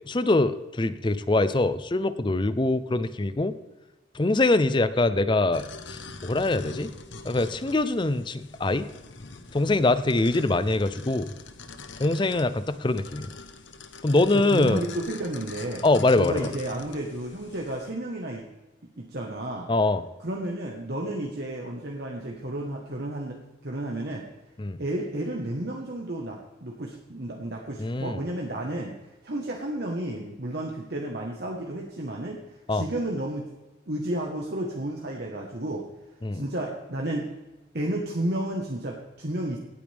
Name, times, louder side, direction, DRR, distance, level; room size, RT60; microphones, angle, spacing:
voice 1, 0.1-3.5 4.1-6.9 7.2-8.9 9.5-11.3 12.0-13.3 14.0-14.8 15.8-16.5 19.7-20.0 24.6-24.8 27.8-28.2 32.7-32.8 36.2-36.4, left 2 dB, 25° left, 13 dB, 0.5 m, -23 dB
sound 1, 5.5-17.9, left 4 dB, 75° left, 1.0 m, -44 dB
voice 2, 14.3-15.8 16.1-18.4 19.0-19.7 20.2-24.3 24.8-29.0 29.2-32.4 32.7-33.4 33.9-35.8 36.3-37.3 37.7-39.6, right 1 dB, 55° right, 0 dB, 1.3 m, -32 dB
17.5 x 8.6 x 3.5 m, 1.0 s
head